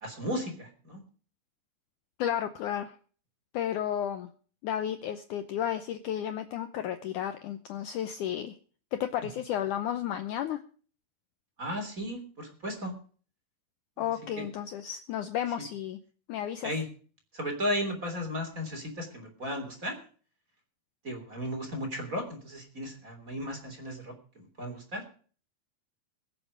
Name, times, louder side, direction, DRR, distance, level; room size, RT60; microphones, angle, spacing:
voice 1, 0.0-1.0 11.6-12.9 14.0-14.5 16.6-16.9 17.3-19.9 21.0-25.0, equal, 20° right, 4 dB, 3.3 m, -35 dB
voice 2, 2.2-3.0 3.5-4.3 4.6-8.5 8.9-10.6 14.0-16.0 16.3-16.7, left 10 dB, 85° left, 9 dB, 1.8 m, -32 dB
22.5 x 7.7 x 5.0 m, 0.42 s
omnidirectional pair, 4.6 m